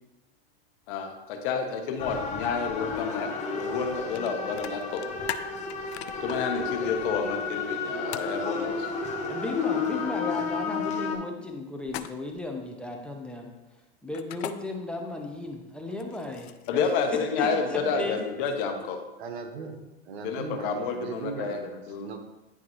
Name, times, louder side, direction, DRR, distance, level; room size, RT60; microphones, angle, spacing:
voice 1, 0.9-5.0 6.2-8.9 16.7-19.0 20.2-22.1, left 5 dB, 55° left, 5 dB, 1.0 m, -30 dB
sound 1, 2.0-11.2, left 4 dB, 20° left, 0.9 m, -32 dB
sound 2, 4.1-4.3 4.6-6.4 8.1-8.3 11.8-12.4 14.1-14.5 15.9-16.8, left 12 dB, 90° left, 0.5 m, -37 dB
voice 2, 9.3-13.5 14.0-16.5 17.4-18.2, left 2 dB, 5° left, 1 dB, 0.5 m, -35 dB
voice 3, 19.2-19.8 20.1-21.7 22.0-22.2, right 5 dB, 80° right, 5 dB, 1.1 m, -38 dB
9.7 x 3.6 x 3.1 m, 1.0 s
supercardioid pair, 135°, 32 cm